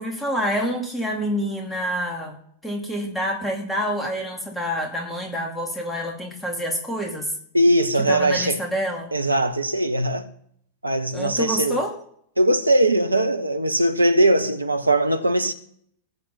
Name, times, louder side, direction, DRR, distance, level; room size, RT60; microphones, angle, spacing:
voice 1, 0.0-2.4 2.6-7.3 8.1-9.1 11.1-11.9, equal, 5° left, 2.6 m, -27 dB
voice 2, 7.5-8.6 9.1-10.3 10.8-11.8 12.4-15.5, right 1 dB, 85° right, 0.8 m, -20 dB
20.5 x 7.7 x 4.3 m
figure-of-eight pair, 90°, 0 cm